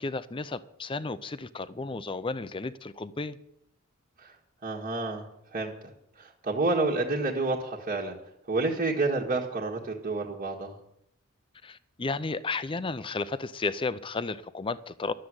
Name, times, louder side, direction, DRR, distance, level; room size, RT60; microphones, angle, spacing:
voice 1, 0.0-3.4 11.6-15.1, left 3 dB, 25° left, 0.5 m, -33 dB
voice 2, 4.6-5.2 5.5-5.7 6.2-8.1 8.5-10.8, right 3 dB, 40° right, 1.6 m, -29 dB
12.5 x 7.6 x 9.7 m
head